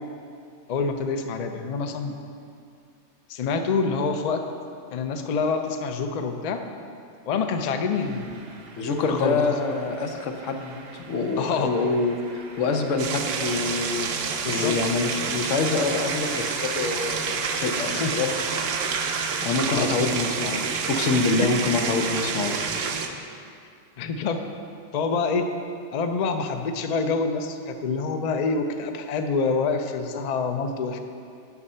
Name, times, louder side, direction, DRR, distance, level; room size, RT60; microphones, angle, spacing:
voice 1, 0.7-2.2 3.3-4.4 4.9-6.6 7.3-8.4 8.8-9.4 11.4-11.7 14.4-14.7 17.9-18.2 19.1-19.2 19.7-20.1 21.4-21.5 24.0-24.4 24.9-25.5 25.9-31.0, left 4 dB, 50° left, 6 dB, 0.5 m, -26 dB
sound 1, 7.9-22.9, right 4 dB, 60° right, 0.9 m, -39 dB
voice 2, 8.8-14.1 14.5-18.3 19.4-22.8, left 3 dB, 85° left, 4 dB, 1.1 m, -26 dB
sound 2, 13.0-23.1, right 5 dB, 85° right, 1.0 m, -29 dB
8.3 x 6.5 x 5.5 m, 2.4 s
omnidirectional pair, 1.3 m